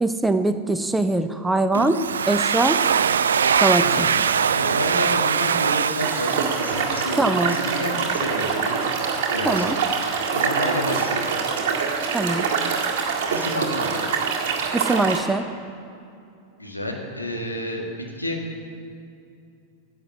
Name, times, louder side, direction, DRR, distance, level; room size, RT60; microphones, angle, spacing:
voice 1, 0.0-2.0 2.3-2.8 3.6-4.1 7.2-7.6 9.5-9.8 12.1-12.4 14.7-15.4, right 2 dB, 5° right, 9 dB, 0.6 m, -22 dB
Domestic sounds home sounds, 1.7-7.4, right 7 dB, 65° right, 0.3 m, -22 dB
voice 2, 3.7-4.2 4.5-8.8 9.3-9.8 10.3-11.3 13.3-13.9 16.6-18.4, left 1 dB, 85° left, 0 dB, 1.7 m, -30 dB
sound 1, 6.0-15.2, right 5 dB, 50° right, 1.8 m, -25 dB
10.5 x 8.0 x 7.5 m, 2.5 s
figure-of-eight pair, 90°, 0 cm